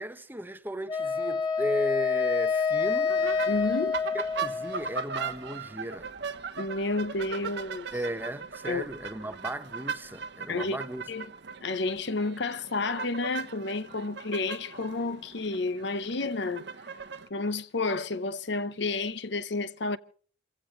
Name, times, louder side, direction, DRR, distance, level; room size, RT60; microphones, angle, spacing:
voice 1, 0.0-3.2 4.1-6.1 7.9-11.0, equal, 10° right, 0.8 m, -35 dB
Wind instrument woodwind instrument, 0.9-5.0, left 5 dB, 20° left, 1.9 m, -27 dB
sound 1, 3.1-17.3, right 5 dB, 60° right, 1.1 m, -39 dB
voice 2, 3.5-4.0 6.6-7.9 8.7-8.8 10.5-10.8 11.1-11.3 11.6-16.7 17.3-20.0, left 3 dB, 60° left, 0.8 m, -30 dB
28.0 x 16.0 x 3.2 m
head